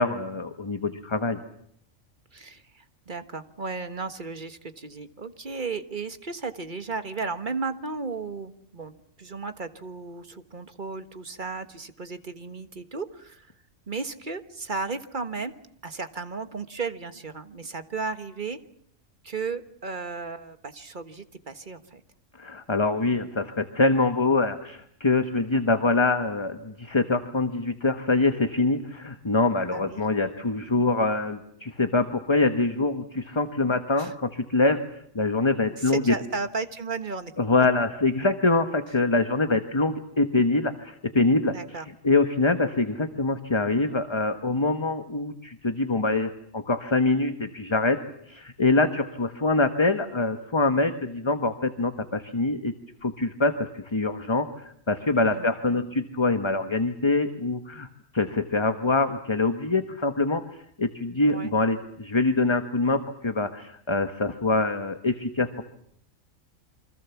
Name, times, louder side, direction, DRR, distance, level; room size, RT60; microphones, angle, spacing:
voice 1, 0.0-1.4 22.4-34.8 35.1-36.1 37.4-48.0 48.3-52.7 53.0-57.9 58.1-60.4 60.8-65.6, left 3 dB, 20° left, 8 dB, 1.3 m, -24 dB
voice 2, 2.3-8.9 9.2-13.5 13.9-15.5 15.8-18.6 19.2-22.0 29.7-30.0 34.0-34.1 35.8-37.3 37.6-37.7 41.5-41.8 55.3-55.9 61.2-61.5, right 4 dB, 40° right, 10 dB, 1.6 m, -34 dB
28.0 x 25.0 x 7.2 m, 0.68 s
omnidirectional pair, 1.4 m